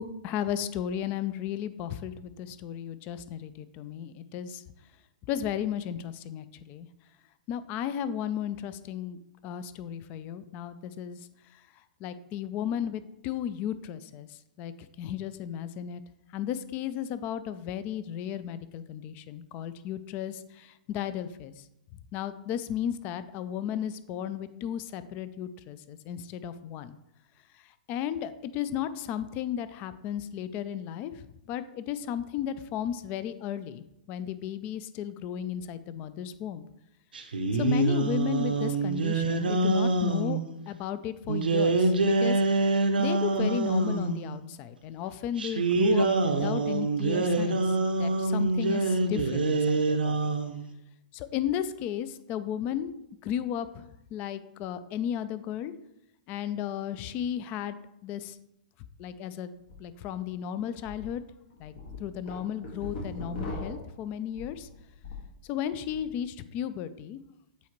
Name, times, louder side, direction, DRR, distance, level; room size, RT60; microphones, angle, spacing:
voice 1, 0.0-4.6 5.3-6.9 7.5-9.2 9.4-11.2 12.0-16.0 16.3-21.5 22.1-26.9 27.9-31.2 31.5-36.6 37.6-40.4 40.7-42.4 43.0-47.6 48.0-50.3 51.1-52.9 53.2-53.8 54.1-55.7 56.3-57.8 58.0-58.4 59.0-59.5 59.8-61.2 61.6-64.7 65.5-67.2, left 9 dB, 35° left, 13 dB, 0.4 m, -34 dB
sound 1, 37.1-40.4 41.3-44.2 45.4-50.6, right 2 dB, 90° right, 0.7 m, -25 dB
sound 2, 59.6-59.7 60.2-60.3 60.8-61.1 61.5-65.3 65.7-66.1, left 2 dB, 70° left, 2.0 m, -39 dB
8.3 x 4.2 x 3.1 m, 0.83 s
hypercardioid pair, 120°, 5 cm